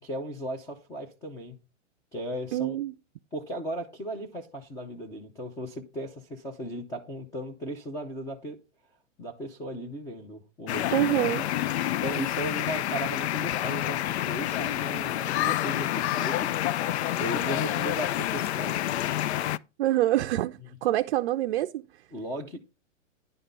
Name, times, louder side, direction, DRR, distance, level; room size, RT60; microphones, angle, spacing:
voice 1, 0.0-1.6 2.1-2.8 3.3-8.6 9.2-11.0 11.9-18.8 22.1-22.7, right 1 dB, 10° left, 0.6 m, -36 dB
voice 2, 2.5-2.9 10.9-11.5 19.8-21.9, right 14 dB, 50° right, 0.5 m, -26 dB
sound 1, 10.7-19.6, left 13 dB, 60° left, 0.5 m, -28 dB
10.5 x 3.7 x 6.6 m
hypercardioid pair, 145°, 38 cm